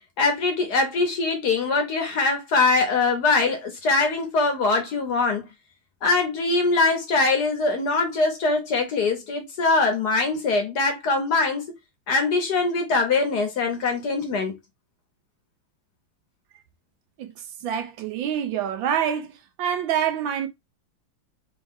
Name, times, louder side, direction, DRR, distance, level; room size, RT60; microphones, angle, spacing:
voice 1, 0.2-5.4 6.0-11.6 12.1-14.6, left 3 dB, 60° left, 1.3 m, -22 dB
voice 2, 17.6-20.5, right 9 dB, 75° right, 1.4 m, -26 dB
4.1 x 2.9 x 3.6 m
omnidirectional pair, 2.3 m